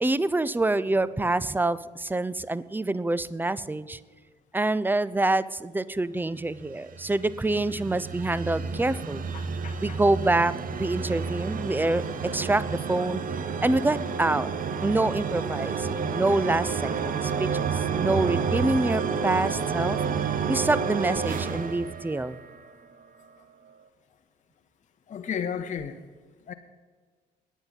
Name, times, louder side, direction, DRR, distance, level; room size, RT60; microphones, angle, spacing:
voice 1, 0.0-4.0 4.5-9.3 9.8-13.2 13.6-14.5 14.8-20.0 20.5-22.4, right 2 dB, 10° right, 18 dB, 0.5 m, -26 dB
sound 1, 6.6-22.7, right 6 dB, 40° right, 0.9 m, -30 dB
voice 2, 9.3-10.0 25.1-26.0 26.5-26.6, left 7 dB, 35° left, 6 dB, 0.8 m, -34 dB
20.0 x 8.1 x 4.1 m, 1.5 s
figure-of-eight pair, 50°, 21 cm